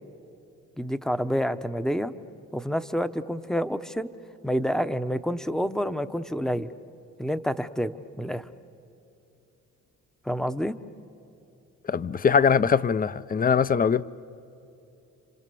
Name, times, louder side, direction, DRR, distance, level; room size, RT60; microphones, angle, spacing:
voice 1, 0.8-2.1 2.5-4.1 4.4-6.7 7.2-8.5 10.2-10.8, equal, ahead, 0.8 m, -28 dB
voice 2, 11.9-14.0, left 6 dB, 30° left, 0.6 m, -22 dB
30.0 x 26.0 x 6.9 m
cardioid pair, 90°, 30 cm